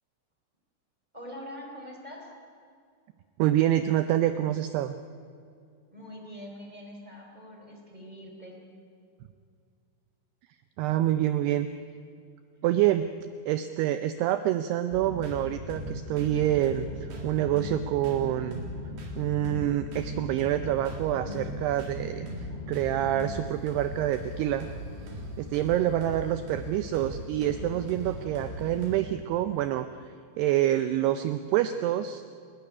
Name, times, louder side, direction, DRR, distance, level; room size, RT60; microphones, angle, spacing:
voice 1, 1.1-2.3 5.9-8.6, equal, 10° right, 0 dB, 3.3 m, -43 dB
voice 2, 3.4-5.0 10.8-11.7 12.6-13.1 13.5-18.6 19.2-24.7 25.4-30.1 30.4-32.2, right 12 dB, 80° right, 11 dB, 2.4 m, -27 dB
sound 1, 14.9-29.0, left 1 dB, 60° right, 5.6 m, -38 dB
29.5 x 13.5 x 9.7 m, 2.3 s
omnidirectional pair, 5.3 m